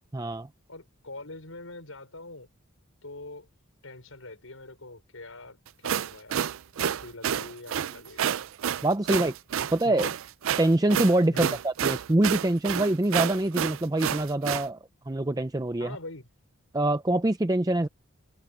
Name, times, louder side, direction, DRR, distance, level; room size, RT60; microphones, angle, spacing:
voice 1, 0.1-0.5 8.8-9.3 9.7-10.1 10.6-14.8 15.1-16.0 16.7-17.9, right 1 dB, 15° right, 0.5 m, -25 dB
voice 2, 0.7-2.5 3.0-3.5 3.8-6.5 6.8-8.4 9.1-9.3 9.8-10.2 11.3-11.6 15.8-16.3, left 2 dB, 80° left, 5.7 m, -43 dB
sound 1, 5.7-14.7, right 9 dB, 75° right, 0.4 m, -29 dB
head